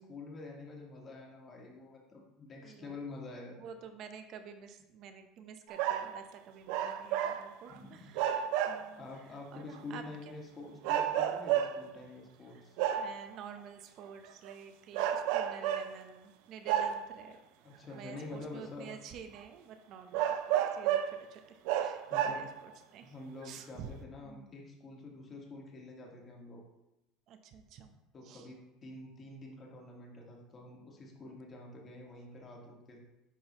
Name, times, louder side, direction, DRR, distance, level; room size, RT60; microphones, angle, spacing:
voice 1, 0.0-3.6 7.7-8.1 9.0-12.8 17.6-18.9 22.1-22.5 23.0-26.6 28.1-33.0, left 2 dB, 35° left, -1 dB, 1.9 m, -47 dB
voice 2, 2.5-3.0 3.5-10.4 12.5-12.6 12.9-17.4 17.9-23.1 23.4-23.9 24.2-24.5 27.3-27.9 28.2-28.5, right 7 dB, 55° right, 7 dB, 0.8 m, -50 dB
sound 1, 5.7-6.2 6.7-7.8 8.2-9.0 9.7-9.8 10.8-12.0 12.8-13.3 14.3-14.5 14.9-16.0 16.7-17.3 18.2-18.3 18.9-19.0 19.4-19.5 20.1-21.2 21.7-22.7 23.4-23.5, right 10 dB, 75° right, 0.4 m, -31 dB
10.0 x 3.9 x 3.1 m, 0.95 s
supercardioid pair, 100°, 0 cm